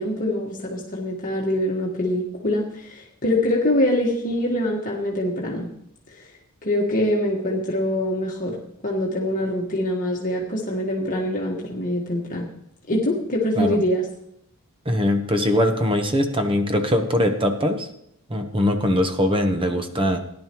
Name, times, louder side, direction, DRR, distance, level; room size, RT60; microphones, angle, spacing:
voice 1, 0.0-5.7 6.1-6.2 6.6-8.6 8.8-12.5 12.9-14.0, left 1 dB, 40° left, -3 dB, 1.5 m, -24 dB
voice 2, 14.8-17.9 18.3-20.2, left 1 dB, 25° right, 6 dB, 1.1 m, -21 dB
18.0 x 10.5 x 3.1 m, 0.74 s
head